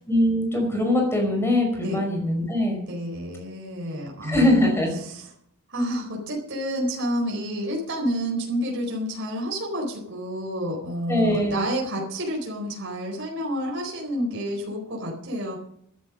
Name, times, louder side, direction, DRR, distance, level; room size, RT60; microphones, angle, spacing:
voice 1, 0.1-2.8 4.2-5.0 11.1-11.6, left 1 dB, 10° left, 2 dB, 5.3 m, -22 dB
voice 2, 2.9-4.7 5.0-5.3 5.7-15.6, equal, 60° right, -1 dB, 4.5 m, -29 dB
14.0 x 11.0 x 6.3 m, 0.70 s
head